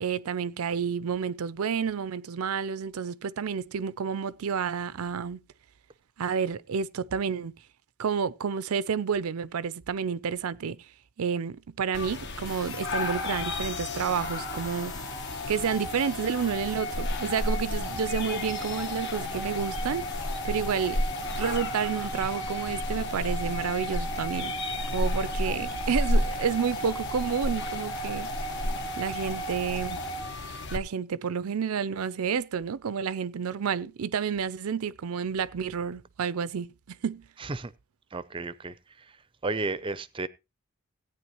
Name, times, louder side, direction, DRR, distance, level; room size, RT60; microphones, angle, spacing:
voice 1, 0.0-5.4 6.2-7.5 8.0-10.8 11.2-14.9 15.5-20.1 20.4-24.6 24.9-28.3 29.0-30.0 30.7-37.3, right 6 dB, 75° right, 0.5 m, -30 dB
sound 1, 11.9-30.8, left 1 dB, 50° left, 1.1 m, -33 dB
sound 2, 12.4-30.7, equal, 70° left, 2.6 m, -36 dB
voice 2, 37.4-37.7 38.1-39.2 39.4-40.3, right 3 dB, 25° right, 0.5 m, -33 dB
17.0 x 9.3 x 3.0 m
head